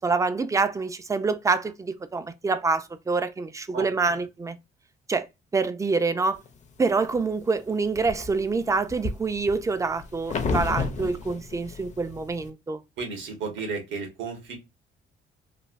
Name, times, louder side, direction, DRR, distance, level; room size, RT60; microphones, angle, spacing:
voice 1, 0.0-4.6 5.1-5.3 5.5-6.4 6.8-12.8, right 4 dB, 15° right, 0.4 m, -26 dB
sound 1, 6.5-7.2 7.7-12.5, left 4 dB, 35° left, 0.5 m, -32 dB
voice 2, 13.0-14.6, right 4 dB, 70° right, 1.2 m, -33 dB
3.2 x 2.2 x 2.4 m
cardioid pair, 90°, 20 cm